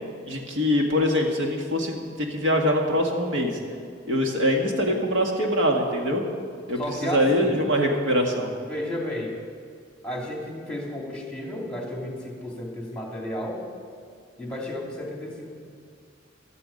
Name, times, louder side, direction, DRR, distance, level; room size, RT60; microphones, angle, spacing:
voice 1, 0.2-3.6 4.1-6.2 6.7-8.5, equal, 75° right, 1 dB, 1.9 m, -23 dB
voice 2, 6.8-7.6 8.7-9.4 10.0-13.6 14.4-15.5, left 1 dB, 5° left, -1 dB, 2.6 m, -32 dB
16.0 x 12.5 x 5.3 m, 2.2 s
head